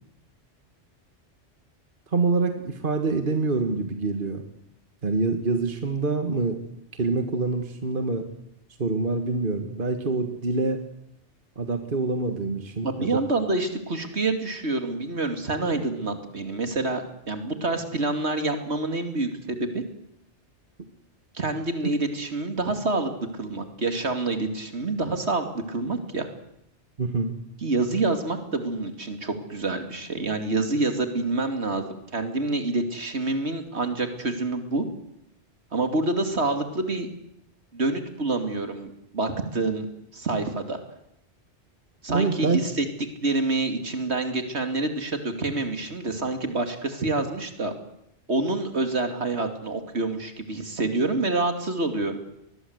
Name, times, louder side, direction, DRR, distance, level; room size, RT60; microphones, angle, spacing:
voice 1, 2.1-4.4 5.0-6.6 7.0-8.3 8.8-10.8 11.6-13.2 27.0-27.4 42.1-42.7, right 3 dB, 45° right, 7 dB, 1.9 m, -26 dB
voice 2, 12.8-19.8 21.3-26.3 27.6-34.8 35.7-37.1 37.7-39.9 40.1-40.8 42.0-42.9 43.2-47.7 48.3-52.1, right 2 dB, 65° right, 7 dB, 2.9 m, -27 dB
23.5 x 21.0 x 8.0 m, 0.80 s
omnidirectional pair, 1.2 m